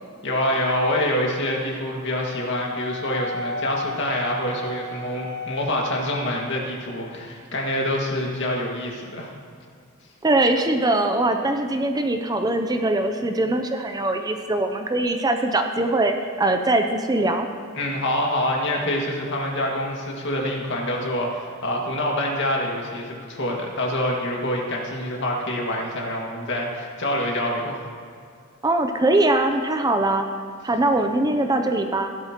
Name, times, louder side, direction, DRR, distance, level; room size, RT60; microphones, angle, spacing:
voice 1, 0.2-9.3 17.8-27.8, left 1 dB, 60° left, -1 dB, 2.0 m, -26 dB
Wind instrument woodwind instrument, 2.4-6.5, left 1 dB, 60° right, 2.2 m, -34 dB
voice 2, 10.2-17.5 28.6-30.3 30.6-32.1, right 2 dB, 20° right, 6 dB, 0.5 m, -22 dB
16.5 x 12.0 x 3.0 m, 2.2 s
head